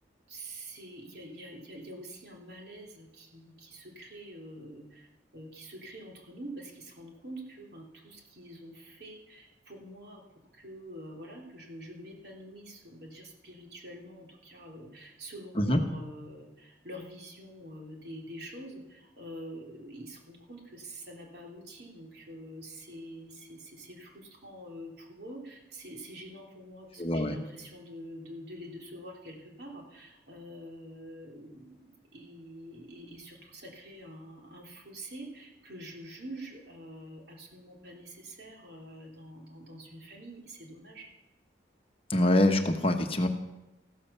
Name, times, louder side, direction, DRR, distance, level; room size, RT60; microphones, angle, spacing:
voice 1, 0.3-41.1, right 1 dB, 60° right, 0 dB, 3.4 m, -46 dB
voice 2, 27.0-27.4 42.1-43.3, left 1 dB, 30° left, 5 dB, 1.1 m, -24 dB
14.5 x 13.0 x 6.9 m, 0.97 s
head